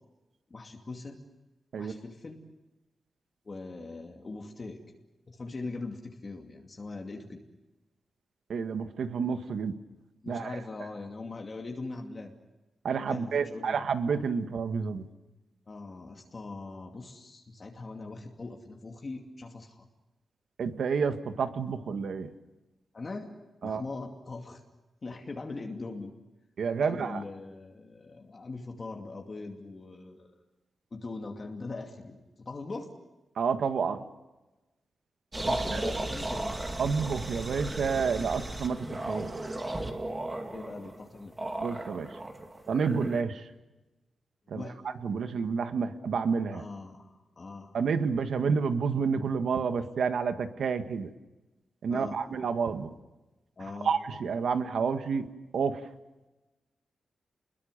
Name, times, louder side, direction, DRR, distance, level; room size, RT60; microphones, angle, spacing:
voice 1, 0.5-1.2 1.8-2.4 3.4-4.8 5.3-7.4 10.2-12.3 13.1-13.8 15.7-19.9 22.9-23.4 23.6-24.6 25.0-26.1 26.8-30.4 30.9-32.9 35.4-36.6 40.5-41.4 44.5-44.8 46.5-47.8 51.9-52.2 53.6-53.9, left 3 dB, 35° left, 2 dB, 2.6 m, -41 dB
voice 2, 8.5-9.7 10.3-10.6 12.8-15.1 20.6-22.3 23.6-23.8 26.6-27.2 33.4-34.0 35.7-35.9 36.8-39.3 41.6-42.2 42.7-43.5 44.5-46.6 47.7-51.1 51.8-52.9 53.8-55.3 55.5-55.9, right 5 dB, 75° right, 8 dB, 1.8 m, -29 dB
sound 1, 35.3-43.2, right 1 dB, 20° right, 2.7 m, -35 dB
29.5 x 22.0 x 6.8 m, 1.1 s
wide cardioid pair, 140°, 0 cm